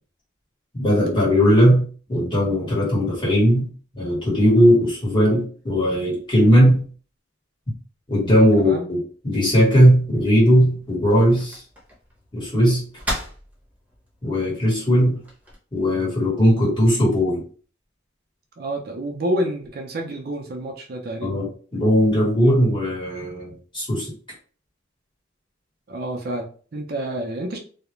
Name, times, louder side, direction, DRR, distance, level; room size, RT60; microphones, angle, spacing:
voice 1, 0.7-6.8 8.1-11.6 12.3-12.8 14.2-15.2 15.7-17.4 21.2-24.1, equal, 25° left, -6 dB, 1.2 m, -18 dB
sound 1, 9.5-15.6, equal, 10° right, 0.9 m, -37 dB
voice 2, 18.6-21.4 25.9-27.6, right 1 dB, 50° right, 2 dB, 0.5 m, -28 dB
2.4 x 2.1 x 2.9 m, 0.41 s
head